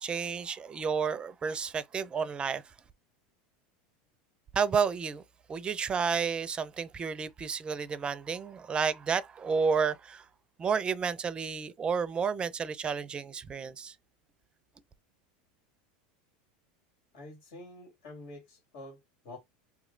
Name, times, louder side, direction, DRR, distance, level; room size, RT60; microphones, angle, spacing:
voice 1, 0.0-2.6 4.5-5.2 5.5-10.3 10.6-13.9, right 6 dB, 20° right, 0.5 m, -31 dB
voice 2, 17.1-19.4, left 2 dB, 70° left, 2.3 m, -47 dB
3.1 x 2.7 x 3.8 m
supercardioid pair, 120°, 4 cm